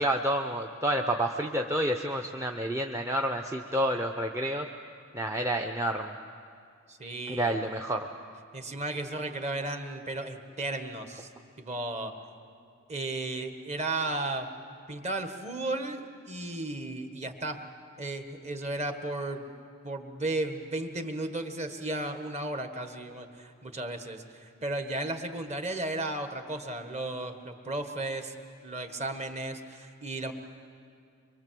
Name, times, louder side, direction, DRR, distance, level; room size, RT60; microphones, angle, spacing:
voice 1, 0.0-4.7 5.1-6.1 7.3-8.1, right 1 dB, 15° right, 2 dB, 0.7 m, -29 dB
voice 2, 6.9-7.8 8.5-11.3 11.6-12.1 12.9-14.5 14.9-17.6 18.0-19.5 19.8-28.3 28.6-30.3, right 2 dB, 30° right, 6 dB, 1.6 m, -34 dB
24.0 x 23.5 x 7.6 m, 2.3 s
head